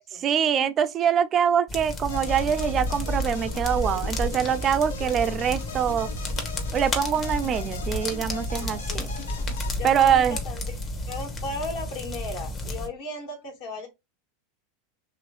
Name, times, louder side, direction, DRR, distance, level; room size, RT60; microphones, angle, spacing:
voice 1, 0.1-6.1 6.7-9.1 9.8-10.4, right 8 dB, 35° right, 0.3 m, -24 dB
sound 1, 1.7-12.9, left 1 dB, 30° left, 0.9 m, -31 dB
sound 2, 2.1-9.7, left 4 dB, 80° left, 0.6 m, -40 dB
voice 2, 9.8-10.8 11.1-13.9, left 2 dB, 60° left, 1.4 m, -35 dB
3.0 x 2.9 x 3.0 m
hypercardioid pair, 90°, 0 cm